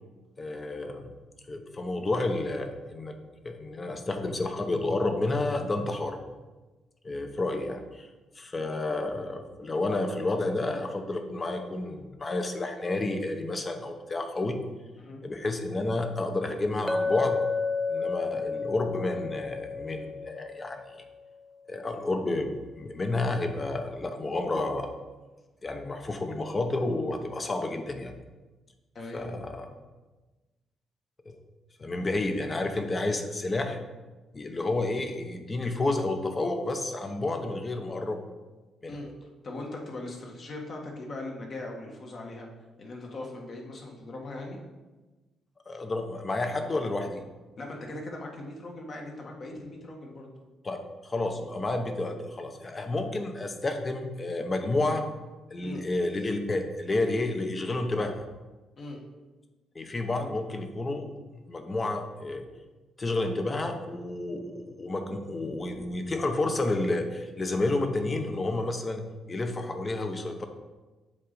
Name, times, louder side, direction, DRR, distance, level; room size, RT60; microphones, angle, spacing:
voice 1, 0.4-1.1 1.5-3.2 3.4-6.2 7.0-8.1 8.4-14.6 15.2-17.4 17.9-21.0 21.7-24.9 25.6-28.1 29.1-29.7 31.3-31.4 31.8-33.8 34.3-38.2 38.8-39.0 45.7-47.2 50.6-50.8 51.0-55.0 55.5-58.3 59.7-61.1 61.5-62.4 63.0-69.0 69.3-70.5, left 2 dB, 30° left, 6 dB, 0.9 m, -30 dB
Chink clink, 16.9-21.0, left 4 dB, ahead, 0.4 m, -31 dB
voice 2, 28.9-29.3 38.9-42.5 42.8-44.6 47.6-50.3 55.6-55.8 58.8-59.0, left 2 dB, 50° left, 0 dB, 1.6 m, -40 dB
7.4 x 3.9 x 5.3 m, 1.2 s
cardioid pair, 90°, 0 cm